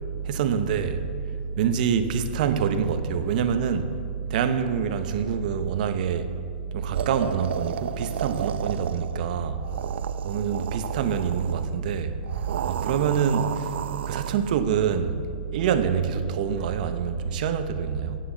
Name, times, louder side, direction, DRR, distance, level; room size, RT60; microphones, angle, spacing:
voice 1, 0.2-1.0 1.6-4.0 4.3-6.3 6.7-9.6 10.2-12.2 12.7-13.7 14.0-15.2 15.5-18.2, right 7 dB, 50° right, 0.9 m, -25 dB
sound 1, 6.9-9.2 9.6-11.7 12.2-14.5, right 9 dB, 80° right, 0.5 m, -33 dB
11.0 x 9.4 x 7.8 m
supercardioid pair, 175°, 6 cm